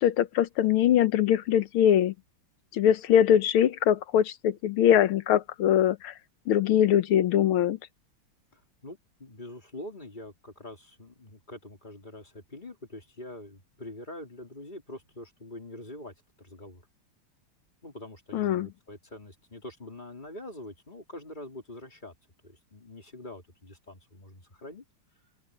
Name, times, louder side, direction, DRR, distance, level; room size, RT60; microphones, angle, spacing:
voice 1, 0.0-2.1 2.7-6.1 6.5-7.8 18.3-18.7, left 10 dB, 75° left, 1.8 m, -22 dB
voice 2, 8.5-16.8 17.8-22.1 22.4-24.8, left 1 dB, 20° left, 3.5 m, -44 dB
open air
omnidirectional pair, 2.4 m